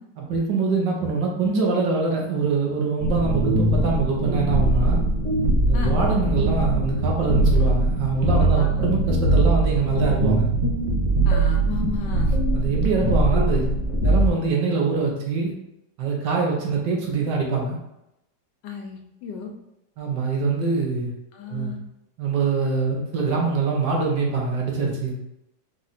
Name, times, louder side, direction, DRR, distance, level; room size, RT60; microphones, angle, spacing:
voice 1, 0.2-5.0 5.7-10.5 12.5-13.7 14.0-15.5 16.0-17.8 20.0-21.1 21.5-21.7 22.2-25.1, right 4 dB, 75° right, -1 dB, 1.6 m, -24 dB
sound 1, 3.0-14.3, right 2 dB, 30° right, 0.6 m, -21 dB
voice 2, 8.4-8.7 11.2-12.4 18.6-19.5 21.3-21.8, left 5 dB, 80° left, 4 dB, 1.3 m, -33 dB
4.7 x 2.5 x 4.1 m, 0.86 s
omnidirectional pair, 1.9 m